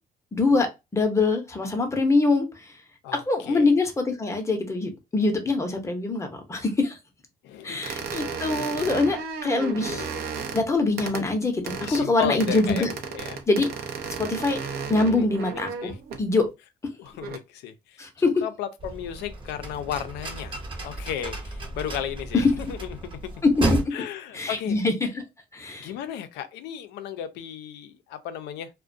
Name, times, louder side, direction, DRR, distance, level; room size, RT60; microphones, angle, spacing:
voice 1, 0.3-2.5 3.1-7.0 7.6-10.0 10.5-12.9 13.5-13.7 14.2-14.6 14.9-15.9 16.2-16.5 18.0-18.3 22.3-22.4 23.4-23.8 24.3-25.2 25.5-25.9, left 3 dB, 15° left, 0.6 m, -24 dB
voice 2, 3.0-3.7 7.4-7.9 9.7-10.2 11.8-13.4 14.4-14.5 14.8-16.0 17.0-18.0 18.4-20.6 20.8-22.8 23.9-24.8 25.8-28.7, left 9 dB, 85° left, 0.5 m, -35 dB
sound 1, 7.8-10.6 11.0-11.2 11.7-12.0 12.4-16.3 17.1-17.4, right 5 dB, 70° right, 0.5 m, -34 dB
sound 2, 18.8-23.8, right 2 dB, 30° right, 0.7 m, -32 dB
2.3 x 2.1 x 2.5 m
cardioid pair, 110°, 17 cm